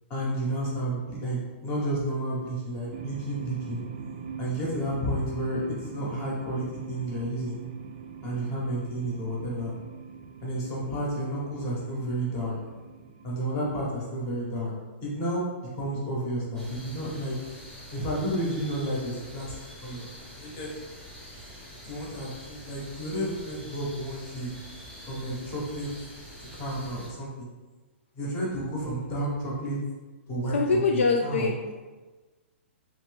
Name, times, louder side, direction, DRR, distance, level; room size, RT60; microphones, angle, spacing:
voice 1, 0.1-3.8 4.4-7.6 8.2-9.7 10.4-12.5 13.2-14.7 15.0-15.4 15.7-17.4 17.9-19.5 19.8-20.0 20.3-20.8 21.9-24.5 25.1-25.9 26.5-27.5 28.2-29.8 30.3-30.6 30.9-31.5, right 1 dB, 30° left, -4 dB, 1.1 m, -31 dB
sound 1, 2.9-13.8, right 6 dB, 45° right, 0.3 m, -43 dB
sound 2, 16.5-27.1, equal, 5° left, 0.9 m, -45 dB
voice 2, 30.5-31.7, left 4 dB, 75° left, 2 dB, 0.3 m, -24 dB
3.0 x 2.8 x 3.4 m, 1.3 s
hypercardioid pair, 150°, 7 cm